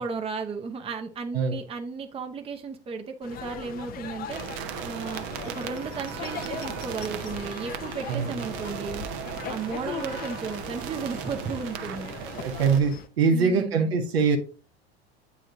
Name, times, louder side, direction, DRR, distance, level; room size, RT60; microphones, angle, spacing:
voice 1, 0.0-9.1 9.5-12.1 13.3-13.9, right 5 dB, 20° right, 0.8 m, -34 dB
sound 1, 3.2-13.1, left 8 dB, 30° left, 0.6 m, -39 dB
sound 2, 4.3-12.8, right 10 dB, 50° right, 0.7 m, -37 dB
voice 2, 12.2-14.4, right 5 dB, 70° right, 1.1 m, -23 dB
8.9 x 3.2 x 3.8 m
figure-of-eight pair, 75°, 32 cm